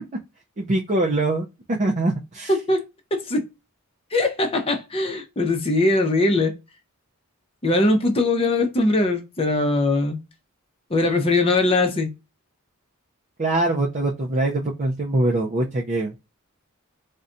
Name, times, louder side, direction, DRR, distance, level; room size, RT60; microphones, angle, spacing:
voice 1, 0.6-2.5 13.4-16.1, right 2 dB, 35° right, 0.4 m, -23 dB
voice 2, 2.5-2.8 3.1-3.4 4.1-6.5 7.6-10.2 10.9-12.1, left 2 dB, 25° left, 0.6 m, -21 dB
3.9 x 2.1 x 2.5 m
head